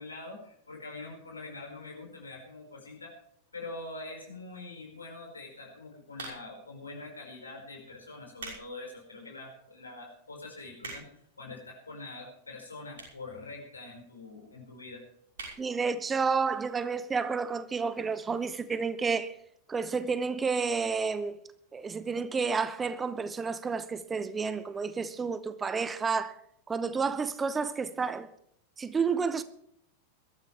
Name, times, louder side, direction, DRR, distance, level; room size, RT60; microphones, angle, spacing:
voice 1, 0.0-3.1 3.5-15.0, left 2 dB, 75° left, 5.3 m, -44 dB
sound 1, 6.1-6.7 7.4-7.6 8.1-8.7 9.1-9.2 9.8-9.9 10.1-10.2 10.4-11.3 12.1-12.2 12.9-13.3 13.6-13.7 13.9-14.0 14.2-14.3 14.6-14.8 15.3-15.6 16.0-16.1 16.3-16.4, right 3 dB, 65° right, 5.8 m, -43 dB
voice 2, 15.6-19.3 19.7-21.4 21.7-26.3 26.7-28.3 28.8-29.4, right 5 dB, 15° right, 0.8 m, -30 dB
22.0 x 13.5 x 3.4 m
figure-of-eight pair, 90°, 0 cm